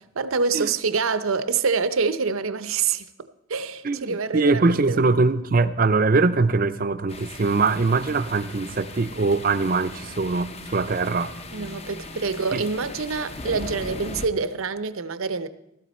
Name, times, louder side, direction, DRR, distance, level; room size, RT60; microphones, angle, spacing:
voice 1, 0.2-5.0 11.5-15.5, right 5 dB, 80° right, 0.7 m, -26 dB
voice 2, 3.8-11.3 12.5-12.6, right 3 dB, 45° right, 0.5 m, -22 dB
sound 1, 7.1-14.3, left 2 dB, 30° left, 0.6 m, -39 dB
sound 2, 9.0-13.8, right 1 dB, 75° left, 3.5 m, -47 dB
15.5 x 13.0 x 4.3 m
head